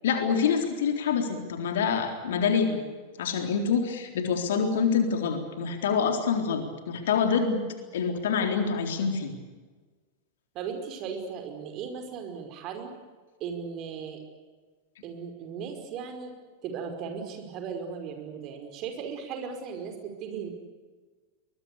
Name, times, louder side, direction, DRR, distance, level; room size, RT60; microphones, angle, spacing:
voice 1, 0.0-2.7 3.2-7.6 7.9-9.3, left 6 dB, 60° left, 6 dB, 3.8 m, -26 dB
voice 2, 10.6-12.9 13.4-14.2 15.0-16.3 16.6-20.5, right 6 dB, 40° right, 5 dB, 5.2 m, -37 dB
23.5 x 21.5 x 8.4 m, 1.4 s
figure-of-eight pair, 90°, 0 cm